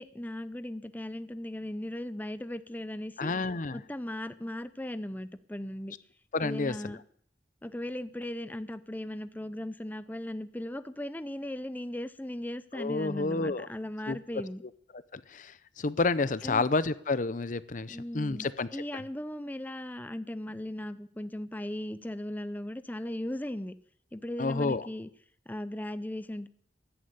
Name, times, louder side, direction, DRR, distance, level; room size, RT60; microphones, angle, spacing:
voice 1, 0.0-3.3 3.7-6.0 6.4-7.0 7.6-14.6 16.4-16.7 17.9-18.5 18.7-23.7 24.1-25.1 25.5-26.5, left 1 dB, 10° left, 13 dB, 0.6 m, -37 dB
voice 2, 3.2-3.8 6.3-6.9 12.7-13.7 14.1-14.2 15.1-18.7 24.4-24.8, left 3 dB, 45° left, 16 dB, 0.7 m, -30 dB
14.0 x 11.0 x 8.2 m, 0.63 s
head